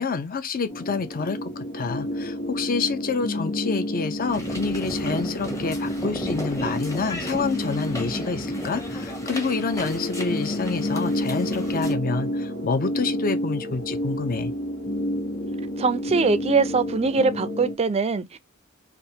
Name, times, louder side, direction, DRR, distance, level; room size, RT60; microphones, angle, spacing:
voice 1, 0.0-14.5, left 4 dB, 40° left, 0.5 m, -28 dB
sound 1, 0.7-17.7, left 1 dB, 90° left, 1.3 m, -30 dB
sound 2, 4.3-11.9, equal, 15° left, 0.8 m, -35 dB
voice 2, 15.8-18.4, right 4 dB, 30° right, 0.4 m, -22 dB
3.4 x 2.5 x 2.7 m
head